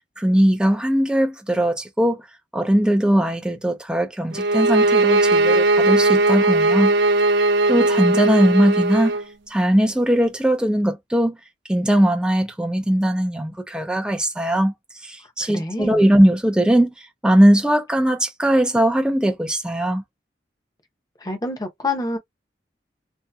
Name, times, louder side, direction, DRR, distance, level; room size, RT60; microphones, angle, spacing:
voice 1, 0.2-2.2 2.5-6.9 7.7-9.1 9.5-11.4 11.7-14.7 15.0-16.9 17.2-20.0, equal, 5° right, 0.4 m, -19 dB
sound 1, 4.3-9.2, right 2 dB, 75° right, 0.4 m, -18 dB
voice 2, 15.4-16.1 21.2-22.2, left 2 dB, 20° left, 0.8 m, -27 dB
2.7 x 2.3 x 2.3 m
head